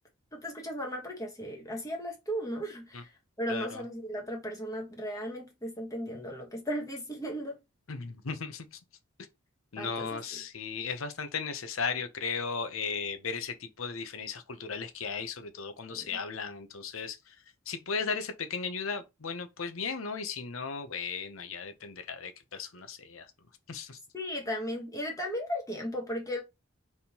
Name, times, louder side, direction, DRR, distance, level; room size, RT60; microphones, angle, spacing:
voice 1, 0.3-3.1 3.4-7.6 9.8-10.2 15.9-16.1 24.1-26.4, equal, 15° left, 1.2 m, -36 dB
voice 2, 3.5-3.8 7.9-8.7 9.7-17.4 17.7-23.3 23.7-24.0, left 5 dB, 85° left, 0.8 m, -36 dB
4.4 x 3.5 x 2.9 m
head